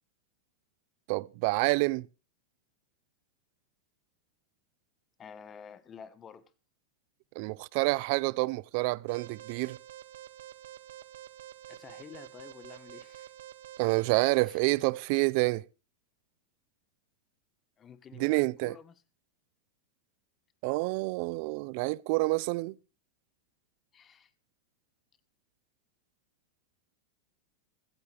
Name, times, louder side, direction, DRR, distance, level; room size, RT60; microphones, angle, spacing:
voice 1, 1.1-2.1 7.4-9.8 13.8-15.6 18.2-18.7 20.6-22.8, right 24 dB, 50° right, 0.6 m, -28 dB
voice 2, 5.2-6.5 11.7-13.3 14.4-14.6 17.8-19.0 23.9-24.3, left 7 dB, 25° left, 1.3 m, -50 dB
Alarm, 9.1-14.4, right 12 dB, 80° right, 1.0 m, -48 dB
16.0 x 14.5 x 3.4 m
supercardioid pair, 140°, 0 cm